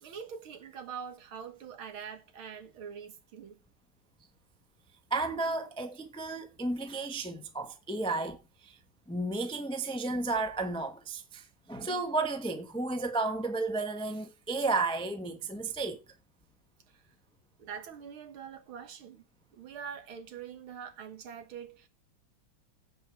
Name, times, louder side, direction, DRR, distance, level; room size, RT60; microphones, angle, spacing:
voice 1, 0.0-3.6 16.9-17.0 17.6-19.3 19.5-21.9, right 7 dB, 80° right, 2.3 m, -44 dB
voice 2, 5.1-8.4 8.6-8.8 9.1-16.0, right 3 dB, 5° left, 0.5 m, -33 dB
16.0 x 5.3 x 4.6 m
omnidirectional pair, 2.3 m